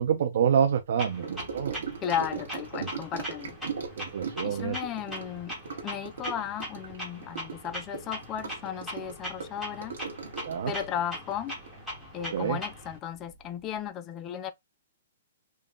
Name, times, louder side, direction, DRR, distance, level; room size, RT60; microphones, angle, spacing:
voice 1, 0.0-1.8 4.0-4.8 10.4-10.7 12.3-12.6, right 8 dB, 55° right, 0.5 m, -27 dB
Clock, 1.0-13.0, equal, ahead, 1.2 m, -41 dB
Gurgling / Sink (filling or washing) / Trickle dribble, 1.2-12.9 13.1-13.5 13.7-13.8, right 5 dB, 75° right, 1.3 m, -39 dB
voice 2, 2.0-3.6 4.4-5.5 5.8-10.0 10.7-11.5 12.1-14.5, left 9 dB, 15° left, 0.4 m, -35 dB
3.8 x 2.3 x 3.7 m
hypercardioid pair, 175°, 0 cm